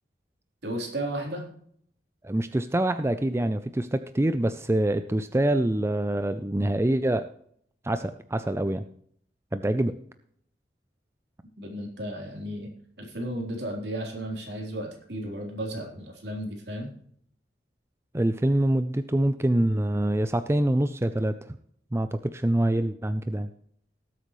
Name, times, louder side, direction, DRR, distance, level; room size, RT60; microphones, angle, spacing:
voice 1, 0.6-1.4 11.6-12.7 13.0-16.9, right 1 dB, 65° right, 1 dB, 3.7 m, -34 dB
voice 2, 2.2-7.3 7.8-8.8 9.5-10.0 18.1-21.4 21.9-23.5, right 1 dB, 15° right, 10 dB, 0.4 m, -25 dB
19.0 x 8.2 x 3.1 m, 0.63 s
head